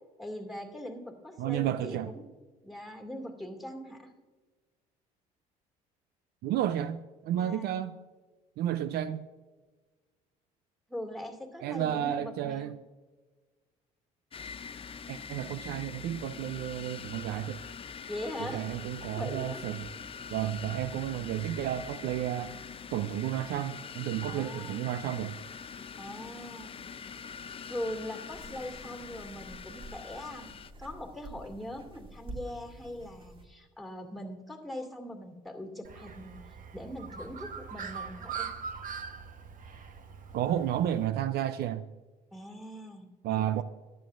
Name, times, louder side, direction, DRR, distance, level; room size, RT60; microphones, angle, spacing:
voice 1, 0.2-2.3 2.6-4.1 7.4-7.8 10.9-12.7 18.1-18.6 19.2-19.6 24.3-24.8 26.0-26.8 27.7-30.5 30.8-38.5 42.3-43.6, left 1 dB, ahead, 2.3 m, -41 dB
voice 2, 1.4-2.1 6.4-8.0 8.6-9.3 11.6-12.8 15.1-17.6 18.4-19.9 20.3-22.6 22.9-25.4 40.3-41.9 43.2-43.6, right 11 dB, 65° right, 0.5 m, -32 dB
sound 1, 14.3-30.7, left 6 dB, 30° left, 0.6 m, -44 dB
sound 2, 28.3-33.5, right 2 dB, 30° right, 2.1 m, -48 dB
Bird, 35.8-41.1, right 6 dB, 50° right, 1.1 m, -42 dB
14.0 x 11.0 x 2.5 m
supercardioid pair, 70°, 18 cm